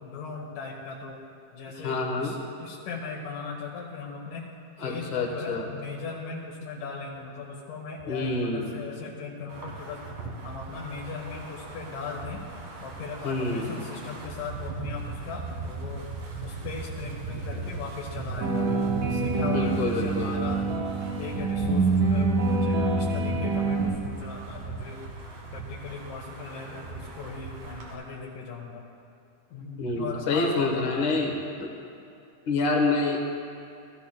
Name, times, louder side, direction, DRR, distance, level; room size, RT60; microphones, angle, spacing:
voice 1, 0.0-1.2 1.5-4.4 4.8-10.0 10.4-12.4 12.8-16.1 16.4-18.7 19.1-20.6 21.2-25.0 25.5-28.9 29.5-31.3, left 4 dB, 85° left, -3 dB, 2.6 m, -38 dB
voice 2, 1.8-2.3 4.8-5.7 8.1-8.8 13.2-13.9 19.5-20.4 29.8-31.7 32.5-33.2, left 3 dB, 60° left, 0 dB, 1.3 m, -27 dB
Wind, 9.5-28.0, right 4 dB, 90° right, 3.2 m, -38 dB
sound 1, 18.4-23.9, right 3 dB, 60° right, 2.0 m, -26 dB
15.0 x 14.5 x 2.2 m, 2.6 s
omnidirectional pair, 3.7 m